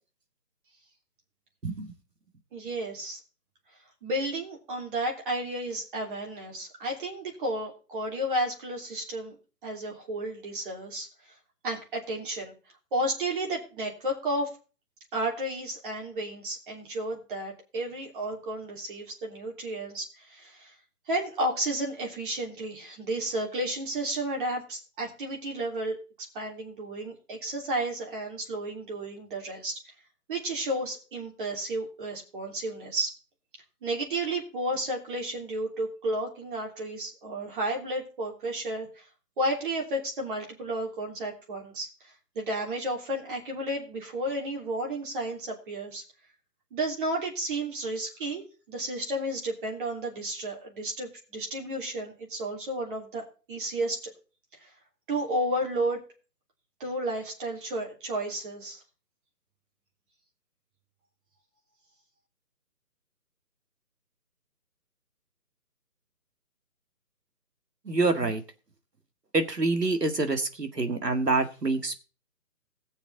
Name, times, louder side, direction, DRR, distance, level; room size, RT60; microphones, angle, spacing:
voice 1, 1.6-1.9 67.9-68.4 69.3-72.0, right 3 dB, 85° right, 7 dB, 2.1 m, -26 dB
voice 2, 2.5-3.2 4.0-9.4 9.6-11.1 11.6-12.5 12.9-14.5 15.1-20.7 21.1-26.0 26.3-29.8 30.3-33.1 33.8-39.0 39.4-41.9 42.3-46.0 46.7-54.1 54.6-54.7 55.1-56.0 56.8-58.8, right 1 dB, 35° right, 0 dB, 3.0 m, -32 dB
17.0 x 7.2 x 4.0 m, 0.35 s
figure-of-eight pair, 145°, 47 cm